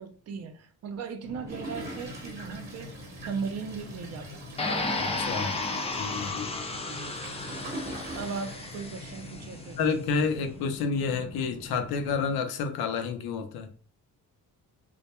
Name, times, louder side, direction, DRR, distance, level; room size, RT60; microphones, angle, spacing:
voice 1, 0.0-2.9 3.3-4.8 6.9-7.4 8.2-9.8, right 5 dB, 45° right, 0.4 m, -38 dB
sound 1, 1.2-12.4, left 2 dB, 45° left, 0.7 m, -45 dB
Toilet flush, 1.5-9.5 10.0-10.1 10.3-10.4, right 1 dB, 25° right, 0.9 m, -44 dB
sound 2, 4.6-9.6, left 3 dB, 20° left, 0.3 m, -33 dB
voice 2, 5.0-5.6 6.0-6.5 9.8-13.7, left 5 dB, 80° left, 0.6 m, -29 dB
2.2 x 2.1 x 2.9 m
cardioid pair, 100°, 37 cm